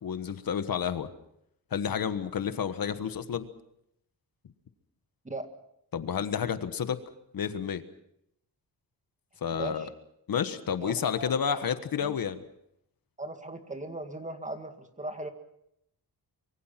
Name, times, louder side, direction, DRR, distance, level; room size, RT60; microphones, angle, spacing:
voice 1, 0.0-1.1 1.7-3.5 5.9-7.0 7.3-7.8 9.4-9.9 10.3-12.4, left 7 dB, 60° left, 10 dB, 1.4 m, -30 dB
voice 2, 9.5-9.9 10.8-11.3 12.0-12.1 13.2-15.3, right 2 dB, 20° right, 7 dB, 2.1 m, -38 dB
25.0 x 23.5 x 5.9 m, 0.75 s
wide cardioid pair, 165°, 39 cm